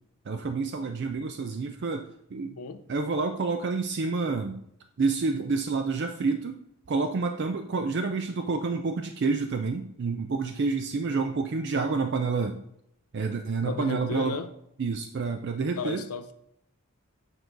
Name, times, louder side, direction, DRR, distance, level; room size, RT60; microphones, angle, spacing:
voice 1, 0.3-2.5 2.9-4.6 5.0-6.6 6.9-12.6 13.1-14.4 14.8-16.0, right 4 dB, 50° right, 7 dB, 0.4 m, -28 dB
voice 2, 2.5-2.8 13.6-14.5 15.8-16.3, left 4 dB, 80° left, 10 dB, 0.6 m, -34 dB
8.9 x 4.6 x 3.8 m, 0.76 s
head